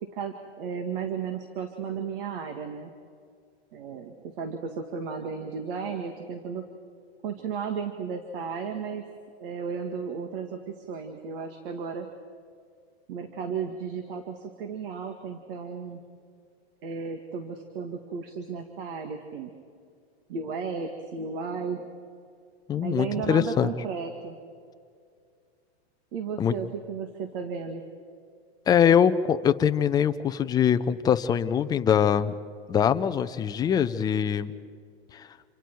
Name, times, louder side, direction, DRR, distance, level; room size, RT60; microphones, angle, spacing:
voice 1, 0.0-2.9 3.7-6.7 7.2-9.1 9.4-12.1 13.1-16.0 16.8-19.5 20.3-21.8 22.8-24.4 26.1-27.8, right 6 dB, 55° right, 6 dB, 2.0 m, -34 dB
voice 2, 22.7-23.7 26.4-26.5 28.7-32.3 32.7-34.5 35.1-35.3, left 8 dB, 10° left, 10 dB, 0.5 m, -23 dB
28.0 x 27.5 x 4.7 m, 2.2 s
supercardioid pair, 145°, 32 cm